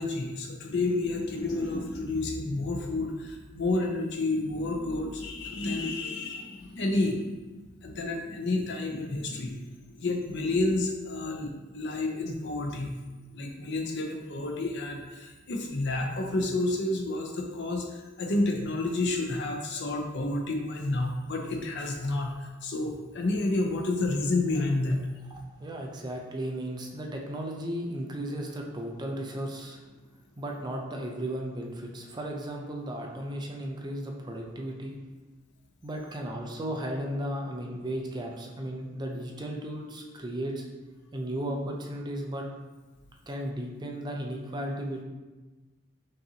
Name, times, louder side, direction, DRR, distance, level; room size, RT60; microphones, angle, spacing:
voice 1, 0.0-7.3 7.8-13.0 13.3-25.0, left 2 dB, 60° left, 2 dB, 0.6 m, -30 dB
voice 2, 25.3-29.8 30.4-34.9 35.8-40.7 41.1-42.5 43.3-45.0, right 1 dB, 20° right, 0 dB, 0.4 m, -35 dB
5.3 x 2.6 x 2.8 m, 1.2 s
head